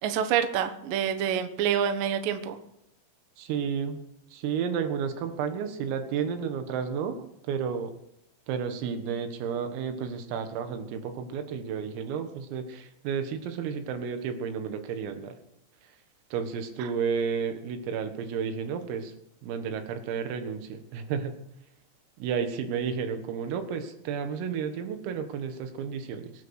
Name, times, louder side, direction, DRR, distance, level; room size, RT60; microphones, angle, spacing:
voice 1, 0.0-2.6 16.8-16.9, right 8 dB, 75° right, 8 dB, 2.0 m, -27 dB
voice 2, 3.4-4.0 4.3-7.9 8.5-15.4 16.3-19.1 19.4-21.3 22.2-26.3, right 6 dB, 90° right, 7 dB, 4.3 m, -32 dB
23.5 x 9.3 x 6.5 m, 0.81 s
omnidirectional pair, 5.8 m